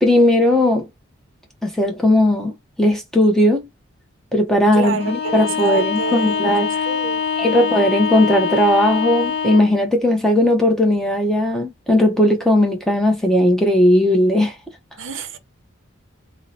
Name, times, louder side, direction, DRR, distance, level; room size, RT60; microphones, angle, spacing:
voice 1, 0.0-0.9 1.6-2.5 2.8-3.7 4.3-6.7 7.4-14.5, left 1 dB, ahead, 0.6 m, -17 dB
voice 2, 4.7-7.7 15.0-15.4, right 5 dB, 70° right, 0.6 m, -29 dB
Bowed string instrument, 5.0-9.8, left 6 dB, 55° left, 0.6 m, -24 dB
2.7 x 2.0 x 3.9 m
head